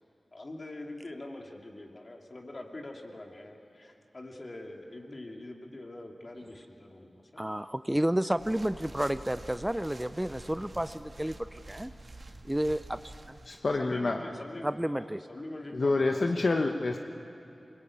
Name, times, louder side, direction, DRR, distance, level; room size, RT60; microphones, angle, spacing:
voice 1, 0.3-7.4 13.8-16.5, left 1 dB, 45° left, 1 dB, 2.7 m, -44 dB
voice 2, 7.4-11.9 12.4-13.4 14.6-15.2, right 1 dB, 10° right, 12 dB, 0.6 m, -31 dB
sound 1, 8.3-13.5, right 2 dB, 50° right, 1.8 m, -48 dB
voice 3, 13.5-14.2 15.7-17.0, left 3 dB, 65° left, 4 dB, 1.1 m, -27 dB
23.0 x 20.0 x 8.7 m, 2.8 s
cardioid pair, 45°, 0 cm